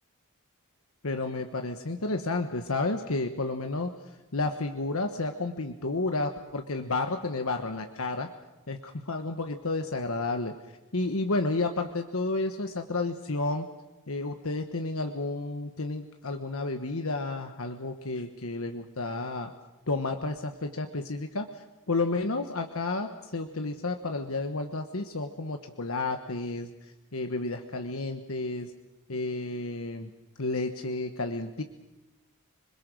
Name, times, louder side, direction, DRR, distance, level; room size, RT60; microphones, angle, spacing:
voice 1, 1.0-3.9 4.3-8.3 8.7-10.5 10.9-13.7 14.1-19.5 19.9-26.7 27.1-28.7 29.1-30.1 30.4-31.6, left 2 dB, 65° left, 6 dB, 1.2 m, -31 dB
27.0 x 21.0 x 6.4 m, 1.1 s
head